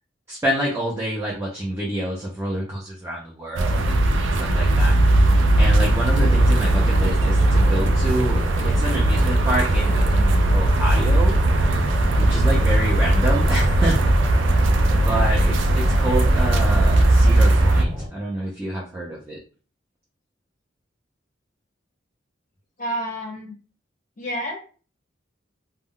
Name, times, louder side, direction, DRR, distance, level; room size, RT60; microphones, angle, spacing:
voice 1, 0.3-5.0 5.5-11.4 12.2-14.2 14.9-19.4, right 1 dB, 15° right, -5 dB, 0.5 m, -28 dB
sound 1, 3.6-17.9, right 1 dB, 70° right, 0.4 m, -18 dB
sound 2, 6.1-18.1, equal, 25° left, 0.9 m, -31 dB
voice 2, 22.8-23.6 24.2-24.6, right 1 dB, 45° left, -1 dB, 0.6 m, -29 dB
2.2 x 2.1 x 3.6 m, 0.38 s
head